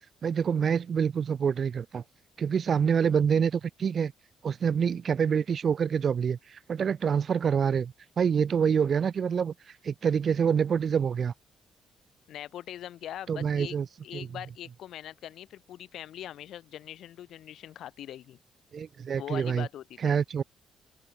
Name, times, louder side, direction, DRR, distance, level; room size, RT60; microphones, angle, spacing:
voice 1, 0.2-2.0 2.4-4.1 4.4-9.5 9.8-11.3 13.3-13.9 14.1-14.3 18.7-19.7 20.0-20.4, right 7 dB, 50° right, 1.0 m, -26 dB
voice 2, 12.3-13.7 14.0-18.4 19.2-20.2, left 11 dB, 75° left, 1.8 m, -42 dB
open air
cardioid pair, 90°, 0 cm